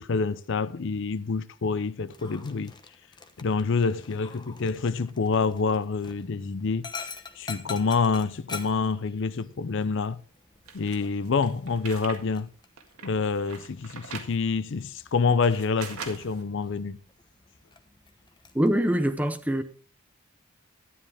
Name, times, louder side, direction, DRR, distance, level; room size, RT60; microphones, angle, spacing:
voice 1, 0.0-2.7 3.4-6.9 7.4-10.2 10.7-12.5 13.0-17.0, left 4 dB, 55° left, 0.5 m, -27 dB
Dog, 2.1-18.7, left 4 dB, 20° left, 0.9 m, -46 dB
sound 1, 10.7-12.2 12.6-14.3 15.0-16.4, right 5 dB, 80° right, 1.9 m, -42 dB
voice 2, 18.5-19.6, equal, 5° right, 0.7 m, -24 dB
12.5 x 10.0 x 3.4 m
head